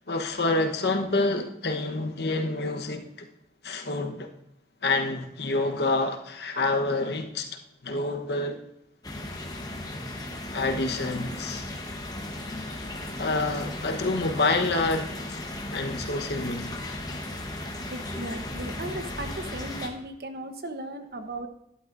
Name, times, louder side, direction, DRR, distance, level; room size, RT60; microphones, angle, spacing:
voice 1, 0.1-3.3 3.6-4.3 4.8-7.5 7.8-8.6 10.5-11.7 13.2-15.4 15.7-16.8, left 2 dB, 75° left, 1.1 m, -27 dB
sound 1, 9.0-19.9, left 1 dB, 20° left, 1.0 m, -36 dB
voice 2, 17.9-21.5, right 1 dB, 60° right, 1.0 m, -36 dB
12.0 x 11.0 x 2.6 m
head